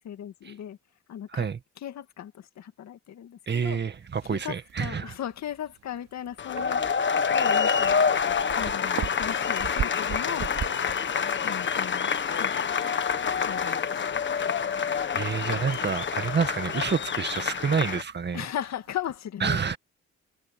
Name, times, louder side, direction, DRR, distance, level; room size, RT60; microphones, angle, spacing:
voice 1, 0.0-0.8 1.1-1.5 1.8-3.8 4.3-8.0 8.6-10.6 11.4-14.0 18.3-19.8, left 10 dB, 65° left, 2.2 m, -37 dB
voice 2, 3.5-5.1 15.1-18.4 19.4-19.8, right 6 dB, 35° right, 1.9 m, -28 dB
sound 1, 3.8-19.2, right 9 dB, 60° right, 2.7 m, -42 dB
sound 2, 6.4-18.0, left 6 dB, 40° left, 1.5 m, -27 dB
cardioid pair, 95°, 29 cm